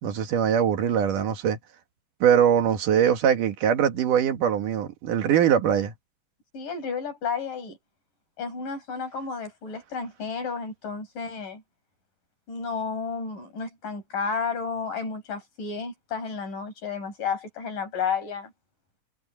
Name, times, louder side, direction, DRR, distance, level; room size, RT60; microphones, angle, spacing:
voice 1, 0.0-1.6 2.2-5.9, right 9 dB, 75° right, 3.3 m, -22 dB
voice 2, 6.5-7.8 8.4-11.6 12.5-18.5, left 5 dB, 80° left, 8.5 m, -32 dB
omnidirectional pair, 3.7 m